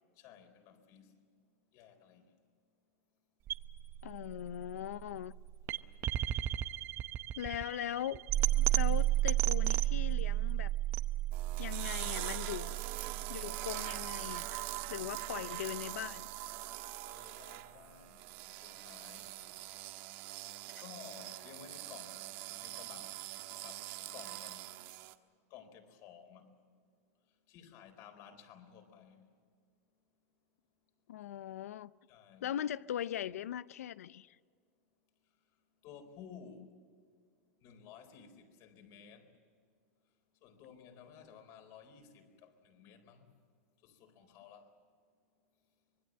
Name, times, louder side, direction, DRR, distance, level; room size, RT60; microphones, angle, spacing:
voice 1, 0.2-1.1 1.7-2.3 5.7-6.0 15.0-15.1 17.0-18.3 18.6-19.3 20.8-22.2 22.6-23.1 23.6-23.8 24.1-24.6 25.5-26.5 27.5-29.2 32.1-32.5 35.8-36.7 37.6-39.3 40.4-43.3 43.8-44.7, left 8 dB, 45° left, 4.2 m, -55 dB
sound 1, 3.5-15.5, right 14 dB, 35° right, 0.8 m, -33 dB
voice 2, 4.0-5.3 7.4-8.2 8.6-10.7 11.6-12.8 13.3-14.6 14.9-16.3 31.1-31.9 32.4-34.4, left 11 dB, 90° left, 0.6 m, -40 dB
sound 2, 11.3-25.1, right 16 dB, 55° right, 1.4 m, -43 dB
25.5 x 21.0 x 7.6 m
supercardioid pair, 135°, 8 cm